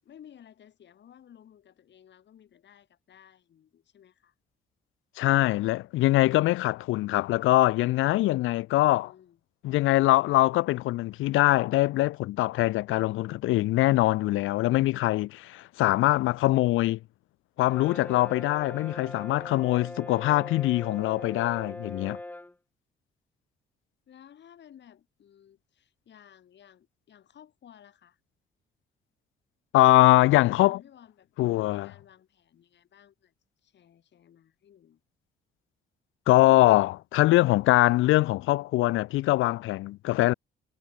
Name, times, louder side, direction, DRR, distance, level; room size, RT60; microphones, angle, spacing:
voice 1, 0.0-4.3 8.7-9.4 24.1-28.2 30.4-33.3 33.6-35.0, left 9 dB, 65° left, 7.2 m, -55 dB
voice 2, 5.2-9.1 9.6-17.0 17.6-22.2 29.7-30.8 31.4-31.9 36.3-40.3, left 17 dB, 85° left, 0.6 m, -23 dB
Brass instrument, 17.6-22.5, left 1 dB, 10° left, 1.0 m, -41 dB
cardioid pair, 90°, 20 cm